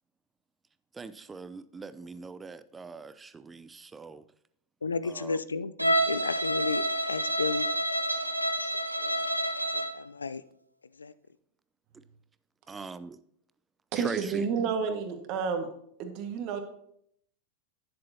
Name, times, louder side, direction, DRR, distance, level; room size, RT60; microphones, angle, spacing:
voice 1, 0.9-4.2 5.0-5.4 12.7-13.2 13.9-14.5, right 4 dB, 15° right, 0.5 m, -41 dB
voice 2, 4.8-7.7 9.0-9.3 9.7-10.4 11.0-11.1, left 4 dB, 75° left, 0.4 m, -33 dB
Bowed string instrument, 5.8-10.0, right 1 dB, 85° right, 0.7 m, -28 dB
voice 3, 13.9-15.7 16.0-16.6, right 6 dB, 40° right, 1.6 m, -30 dB
11.0 x 10.5 x 2.8 m
figure-of-eight pair, 90°, 0 cm